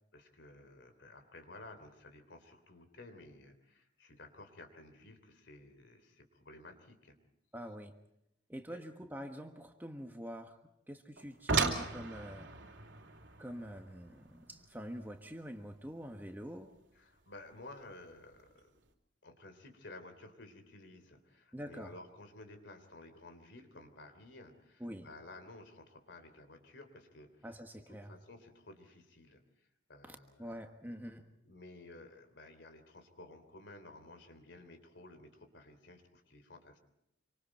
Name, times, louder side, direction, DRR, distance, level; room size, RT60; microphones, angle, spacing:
voice 1, 0.1-7.2 8.7-8.8 16.9-18.6 19.2-27.5 27.8-30.6 31.4-36.8, left 2 dB, 65° left, 9 dB, 3.2 m, -54 dB
voice 2, 7.5-7.9 8.5-10.6 10.9-12.5 13.4-16.7 21.5-21.9 24.8-25.1 27.4-28.1 30.1-31.2, equal, 10° right, 4 dB, 1.4 m, -45 dB
sound 1, 11.2-16.2 17.6-17.7 18.3-18.5 18.9-19.0, right 4 dB, 75° right, 2.7 m, -37 dB
27.0 x 25.0 x 4.4 m, 0.83 s
head